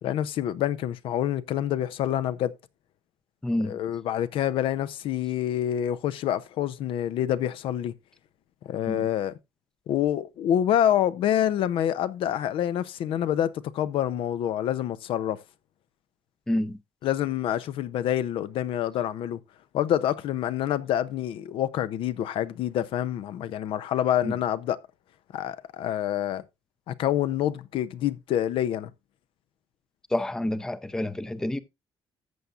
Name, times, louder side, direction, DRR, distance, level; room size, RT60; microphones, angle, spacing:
voice 1, 0.0-2.5 3.6-7.9 8.6-9.4 9.9-15.4 17.0-19.4 19.7-24.8 25.3-26.4 26.9-28.9, left 11 dB, 75° left, 0.7 m, -27 dB
voice 2, 3.4-3.8 8.9-9.0 16.5-16.8 24.2-24.3 30.1-31.6, left 1 dB, 5° left, 0.5 m, -28 dB
14.0 x 7.0 x 2.5 m
cardioid pair, 155°, 9 cm